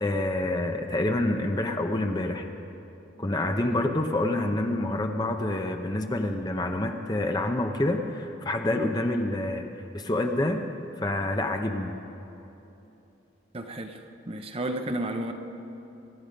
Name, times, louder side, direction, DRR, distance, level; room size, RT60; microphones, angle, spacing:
voice 1, 0.0-2.5 3.2-9.7 9.9-10.6 11.0-11.9, left 1 dB, 20° left, 5 dB, 0.7 m, -27 dB
voice 2, 13.5-14.0 14.3-15.3, right 1 dB, 30° right, 6 dB, 0.7 m, -32 dB
24.0 x 10.5 x 5.2 m, 3.0 s
head